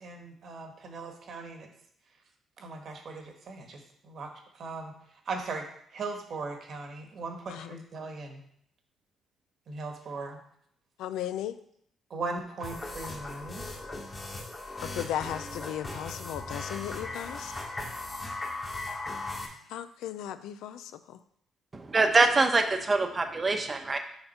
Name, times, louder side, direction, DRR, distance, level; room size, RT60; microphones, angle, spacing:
voice 1, 0.0-1.7 2.6-3.8 4.0-4.3 4.6-4.9 5.3-5.7 5.9-8.4 9.7-10.4 12.1-13.7, right 3 dB, 60° right, 4 dB, 1.4 m, -38 dB
voice 2, 11.0-11.6 14.8-17.5 19.7-21.2, left 11 dB, 90° left, 12 dB, 0.4 m, -36 dB
sound 1, 12.6-19.5, left 2 dB, 25° left, 1.4 m, -38 dB
voice 3, 21.7-24.0, right 3 dB, 30° right, 6 dB, 0.8 m, -24 dB
6.9 x 3.7 x 5.5 m, 0.69 s
cardioid pair, 90°, 0 cm